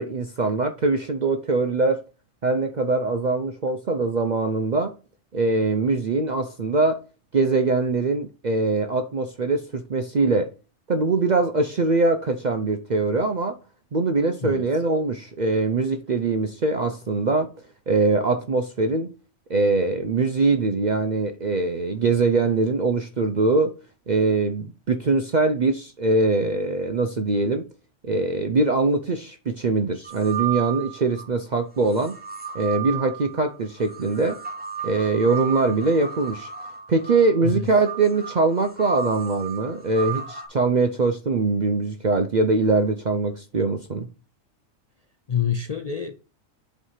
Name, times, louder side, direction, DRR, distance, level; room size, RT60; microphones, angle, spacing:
voice 1, 0.0-2.0 2.4-4.9 5.3-7.0 7.3-10.5 10.9-13.6 13.9-17.5 17.9-19.1 19.5-23.7 24.1-27.6 28.0-32.1 32.5-34.4 34.8-36.5 36.9-44.1, right 3 dB, 50° right, 0.5 m, -22 dB
sound 1, 30.0-31.3 31.9-40.5, right 7 dB, 5° right, 1.4 m, -34 dB
voice 2, 45.3-46.1, left 7 dB, 45° left, 0.5 m, -26 dB
8.1 x 3.2 x 5.6 m
omnidirectional pair, 1.4 m